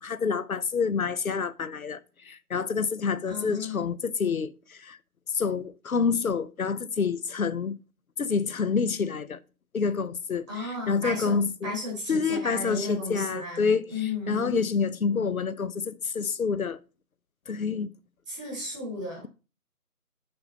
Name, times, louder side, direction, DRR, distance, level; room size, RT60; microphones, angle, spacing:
voice 1, 0.0-5.0 5.3-7.8 8.2-9.4 9.7-11.7 12.1-16.8 17.5-17.9, left 5 dB, 65° left, 0.7 m, -28 dB
voice 2, 3.3-3.9 10.5-14.6 18.3-19.3, left 3 dB, 5° right, 1.3 m, -34 dB
5.7 x 5.3 x 5.3 m
figure-of-eight pair, 165°, 45 cm